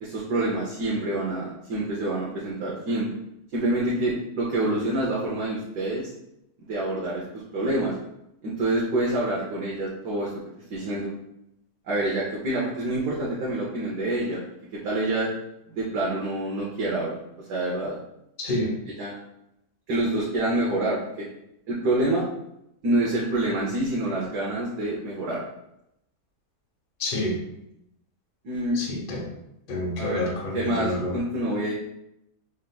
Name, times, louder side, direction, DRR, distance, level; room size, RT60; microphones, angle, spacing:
voice 1, 0.0-3.1 3.5-6.1 6.6-7.9 8.4-10.3 10.7-11.1 11.9-14.4 14.7-15.3 15.7-17.2 17.5-18.0 19.0-19.2 19.9-21.3 21.7-22.2 22.8-25.4 28.4-28.8 30.0-30.3 30.5-31.7, right 1 dB, 85° right, -5 dB, 1.4 m, -27 dB
voice 2, 18.4-18.7 27.0-27.4 28.8-29.3 29.7-31.2, left 1 dB, 40° left, -1 dB, 0.9 m, -28 dB
5.0 x 3.3 x 2.2 m, 0.81 s
omnidirectional pair, 1.7 m